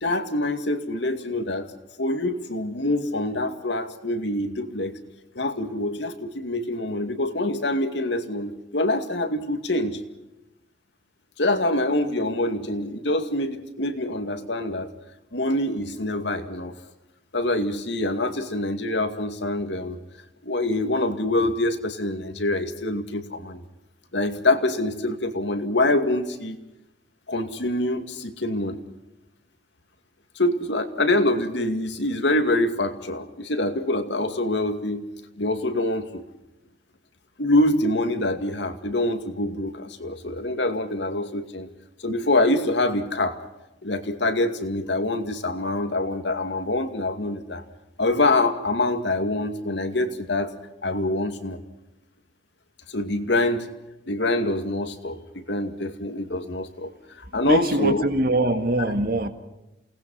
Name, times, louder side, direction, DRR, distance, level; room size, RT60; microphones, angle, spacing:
voice 1, 0.0-1.7 2.0-4.9 5.3-10.0 11.4-14.9 15.3-16.7 17.3-20.0 20.4-23.6 24.1-26.6 27.3-28.8 30.4-35.1 35.4-36.2 37.4-41.7 42.0-43.4 43.8-47.6 48.0-50.5 50.8-51.6 52.9-53.7 54.1-58.1, left 2 dB, 70° left, 2.4 m, -25 dB
voice 2, 57.4-59.3, right 1 dB, 50° right, 1.9 m, -23 dB
29.0 x 19.5 x 5.7 m
head